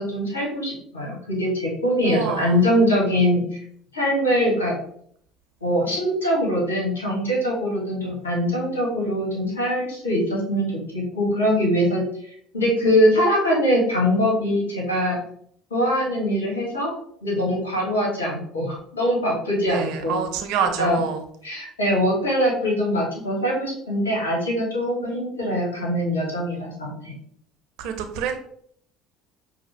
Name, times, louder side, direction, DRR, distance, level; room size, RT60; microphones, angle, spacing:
voice 1, 0.0-3.6 3.9-4.7 5.6-15.2 15.7-16.9 17.2-20.2 20.8-21.0 21.4-27.1, equal, 80° left, -3 dB, 1.6 m, -23 dB
voice 2, 2.0-2.6 19.7-21.2 27.8-28.4, right 7 dB, 60° right, 5 dB, 0.7 m, -27 dB
5.8 x 2.3 x 3.4 m, 0.65 s
figure-of-eight pair, 60°, 0 cm